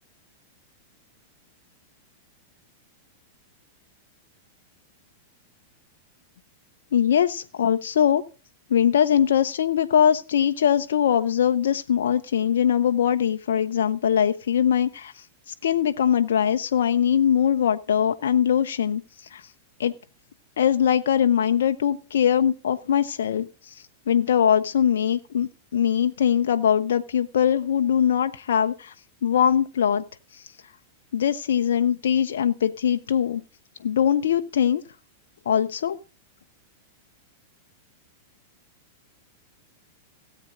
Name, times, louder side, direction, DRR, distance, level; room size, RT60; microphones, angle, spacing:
voice 1, 6.9-8.2 8.7-19.0 19.3-19.4 19.8-19.9 20.6-28.9 29.2-30.0 30.3-30.4 31.1-33.4 33.8-34.8 35.5-36.0, left 9 dB, 60° left, 7 dB, 0.7 m, -22 dB
17.5 x 8.4 x 3.8 m, 0.35 s
figure-of-eight pair, 95°, 0 cm